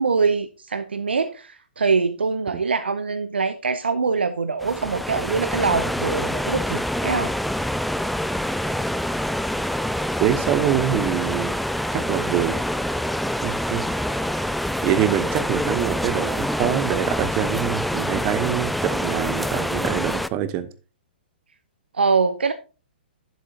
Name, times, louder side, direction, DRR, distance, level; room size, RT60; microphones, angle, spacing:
voice 1, 0.0-7.3 21.9-22.5, right 4 dB, 85° right, 10 dB, 0.7 m, -23 dB
sound 1, 4.6-20.3, equal, ahead, 0.3 m, -26 dB
voice 2, 10.2-11.5 11.9-12.6 13.4-13.8 14.8-20.7, right 11 dB, 30° right, 12 dB, 1.0 m, -24 dB
11.0 x 7.4 x 2.8 m, 0.34 s
hypercardioid pair, 130°, 6 cm